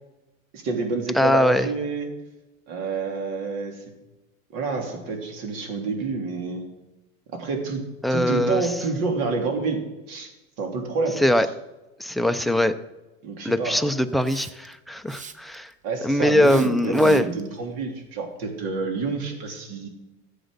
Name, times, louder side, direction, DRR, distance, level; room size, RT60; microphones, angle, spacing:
voice 1, 0.5-2.1 2.7-3.8 4.5-6.6 7.3-7.8 8.1-10.3 10.6-11.2 13.2-13.8 15.8-19.9, right 4 dB, 60° right, 3 dB, 3.3 m, -28 dB
voice 2, 1.2-1.7 8.0-8.7 11.2-11.5 12.0-12.8 13.4-15.7 16.0-17.3, left 1 dB, ahead, 13 dB, 0.3 m, -21 dB
Hiss, 14.2-14.7 15.1-15.7 16.4-17.4, right 5 dB, 20° right, 0.7 m, -42 dB
13.5 x 8.1 x 6.6 m, 1.0 s
supercardioid pair, 110°, 40 cm